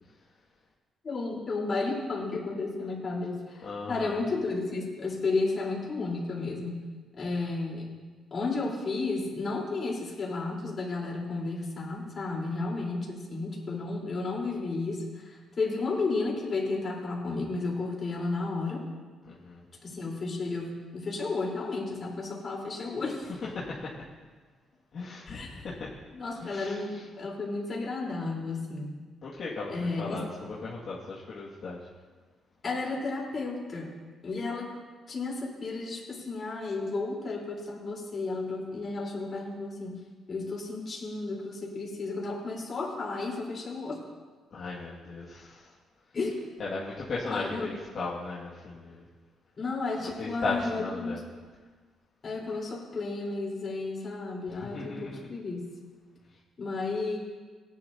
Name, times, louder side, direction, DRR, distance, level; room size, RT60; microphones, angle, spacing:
voice 1, 1.0-7.9 8.3-18.9 19.8-23.3 25.3-25.6 26.1-29.0 29.7-30.2 32.6-33.9 34.2-34.8 35.1-39.9 40.3-44.1 46.1-46.4 47.2-47.7 49.6-51.2 52.2-55.6 56.6-57.2, left 3 dB, 40° left, -3 dB, 4.1 m, -33 dB
voice 2, 3.6-4.2 19.2-19.6 23.4-23.9 24.9-25.9 26.4-27.0 29.2-31.8 44.5-45.7 46.6-49.0 50.0-51.2 54.5-55.3, left 3 dB, 60° left, -7 dB, 2.1 m, -37 dB
17.5 x 11.0 x 2.9 m, 1.4 s
cardioid pair, 90°, 0 cm